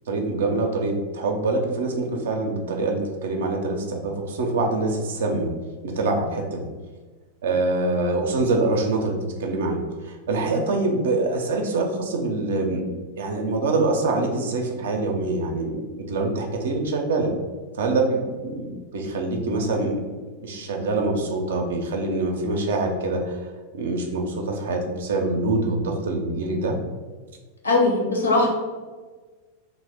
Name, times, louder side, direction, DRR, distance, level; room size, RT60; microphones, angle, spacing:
voice 1, 0.1-5.5 5.8-6.7 7.4-12.8 13.2-17.3 17.7-20.1 20.4-23.4 23.7-26.8, right 2 dB, 60° right, 2 dB, 0.4 m, -25 dB
voice 2, 27.6-28.5, left 2 dB, 70° left, -1 dB, 0.7 m, -19 dB
2.6 x 2.0 x 3.4 m, 1.4 s
figure-of-eight pair, 90°, 0 cm